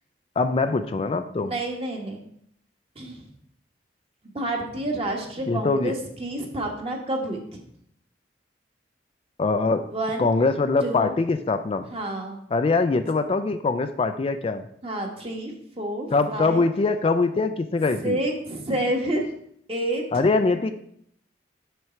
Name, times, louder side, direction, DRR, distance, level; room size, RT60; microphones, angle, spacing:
voice 1, 0.4-1.5 5.5-5.9 9.4-9.8 10.2-11.9 12.5-14.6 16.1-18.2 20.1-20.7, left 3 dB, 30° left, 8 dB, 0.3 m, -23 dB
voice 2, 1.4-2.2 2.9-3.2 4.3-7.6 9.9-10.3 10.8-11.1 11.9-12.4 14.8-16.6 17.9-19.3 19.7-20.2 20.5-20.7, right 1 dB, 35° right, 1 dB, 1.3 m, -29 dB
6.3 x 6.0 x 4.5 m, 0.69 s
head